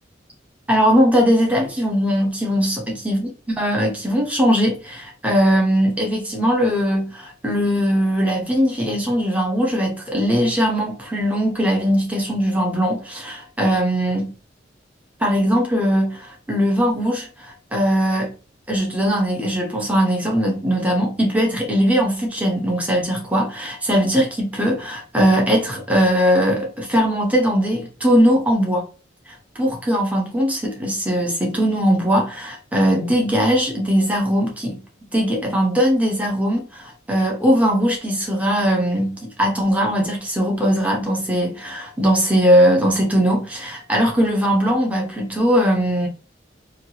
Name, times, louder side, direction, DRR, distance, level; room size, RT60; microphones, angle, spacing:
voice 1, 0.7-14.3 15.2-18.3 18.7-28.9 29.6-34.8 35.1-46.1, equal, 10° right, 0.8 m, -20 dB
3.2 x 2.3 x 2.8 m
head